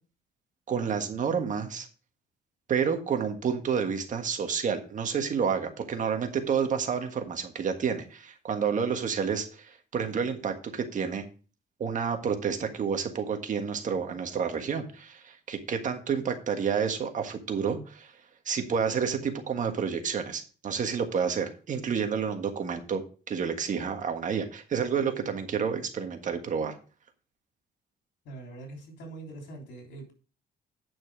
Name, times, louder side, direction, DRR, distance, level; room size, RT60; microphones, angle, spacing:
voice 1, 0.7-1.9 2.7-11.2 11.8-18.1 18.5-23.0 23.3-26.8, right 6 dB, 45° right, 1.6 m, -29 dB
voice 2, 28.3-30.1, right 2 dB, 80° left, 3.5 m, -43 dB
9.4 x 6.1 x 4.9 m
cardioid pair, 130°, 18 cm